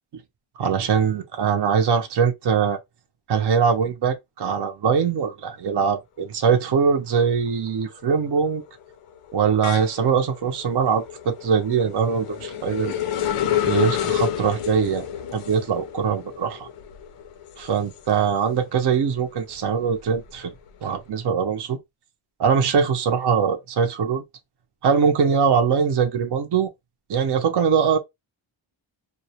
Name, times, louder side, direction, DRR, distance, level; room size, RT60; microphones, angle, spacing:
voice 1, 0.6-2.8 3.3-8.6 9.3-12.9 13.7-15.1 15.3-16.7 17.6-20.5 20.8-21.8 22.4-24.2 24.8-26.7 27.1-28.0, right 6 dB, 55° right, 0.5 m, -22 dB
sound 1, 6.7-7.1 7.5-18.8 19.2-20.9, left 10 dB, 85° left, 0.5 m, -30 dB
2.2 x 2.0 x 2.7 m
wide cardioid pair, 130°, 50 cm